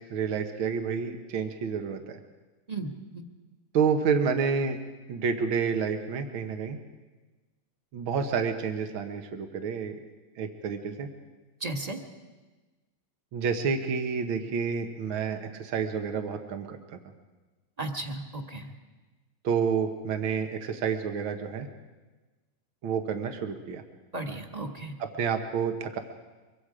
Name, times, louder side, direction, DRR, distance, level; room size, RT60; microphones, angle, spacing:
voice 1, 0.0-2.2 3.7-4.8 5.1-6.8 7.9-10.0 10.4-11.1 13.3-16.8 19.4-21.7 22.8-23.8 25.0-26.0, right 6 dB, 75° right, 6 dB, 2.1 m, -29 dB
voice 2, 2.7-3.2 11.6-12.0 17.8-18.7 24.1-24.9, right 2 dB, 20° right, 4 dB, 1.3 m, -35 dB
24.0 x 23.5 x 5.0 m, 1.2 s
omnidirectional pair, 2.2 m